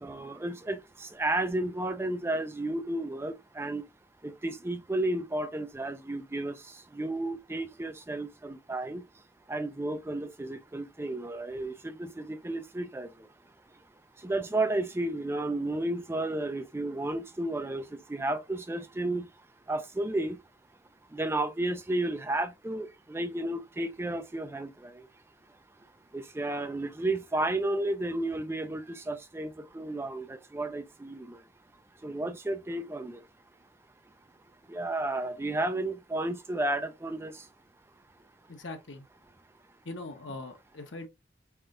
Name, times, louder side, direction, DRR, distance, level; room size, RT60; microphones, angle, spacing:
voice 1, 0.0-3.8 4.2-6.5 6.9-9.0 9.5-13.1 14.2-17.8 18.1-19.3 19.7-20.4 21.1-24.7 26.1-29.5 29.7-31.4 32.0-33.2 34.7-37.3, right 2 dB, 15° right, 0.3 m, -32 dB
voice 2, 38.5-39.0 39.8-41.1, left 2 dB, 80° left, 1.1 m, -41 dB
4.4 x 3.4 x 2.5 m
head